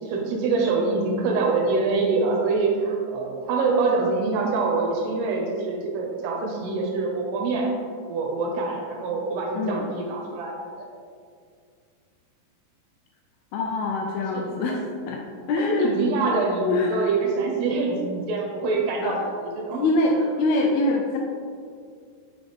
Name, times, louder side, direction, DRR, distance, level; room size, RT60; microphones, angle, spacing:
voice 1, 0.0-7.7 8.1-10.9 14.2-14.8 15.7-19.8 20.2-20.3, right 3 dB, 80° right, 0 dB, 2.9 m, -25 dB
voice 2, 13.5-14.8 15.1-15.2 15.5-15.9 16.6-17.1 19.0-19.3 19.7-21.2, left 2 dB, 80° left, 0 dB, 2.2 m, -24 dB
6.7 x 6.0 x 3.5 m, 2.2 s
omnidirectional pair, 4.8 m